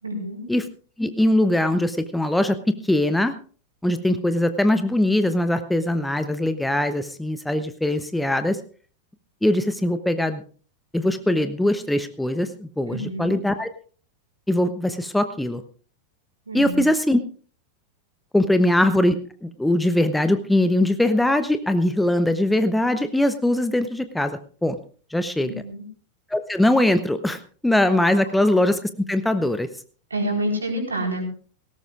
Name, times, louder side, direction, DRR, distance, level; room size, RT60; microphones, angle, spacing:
voice 1, 0.0-0.4 12.9-13.3 16.5-16.8 25.4-25.8 30.1-31.3, right 1 dB, 75° right, 2 dB, 4.4 m, -28 dB
voice 2, 1.0-3.3 3.8-8.6 9.4-10.4 10.9-13.7 14.5-15.6 16.5-17.2 18.3-19.2 19.4-24.8 25.1-25.5 26.3-29.7, left 1 dB, 5° left, 10 dB, 0.9 m, -21 dB
18.5 x 17.5 x 2.5 m, 0.41 s
figure-of-eight pair, 90°, 0 cm